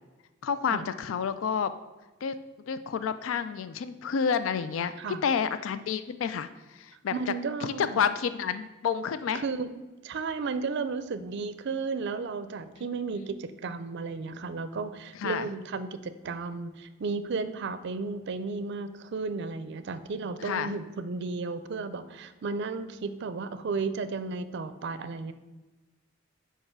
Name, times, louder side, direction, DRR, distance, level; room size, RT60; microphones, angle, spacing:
voice 1, 0.4-1.7 2.2-2.4 2.7-4.9 5.2-7.1 7.6-9.4 15.2-15.5 20.4-20.7, left 7 dB, 75° left, 12 dB, 0.4 m, -29 dB
voice 2, 7.1-8.0 9.3-9.7 10.0-25.3, right 4 dB, 60° right, 12 dB, 0.4 m, -34 dB
5.5 x 4.9 x 5.9 m, 1.2 s
head